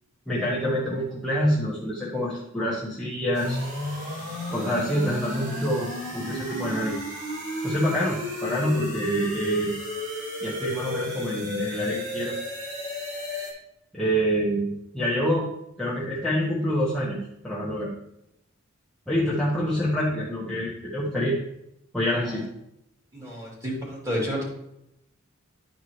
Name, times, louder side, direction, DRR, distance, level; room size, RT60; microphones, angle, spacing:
voice 1, 0.3-3.6 4.5-7.0 7.6-9.8 10.4-12.4 13.9-15.5 15.8-17.2 17.4-17.9 19.1-21.4 21.9-22.4, equal, 5° left, -8 dB, 1.2 m, -26 dB
sound 1, 3.3-13.5, left 1 dB, 60° right, 2.8 m, -33 dB
voice 2, 23.1-24.4, equal, 15° right, -5 dB, 2.9 m, -30 dB
11.0 x 4.7 x 3.1 m, 0.80 s
head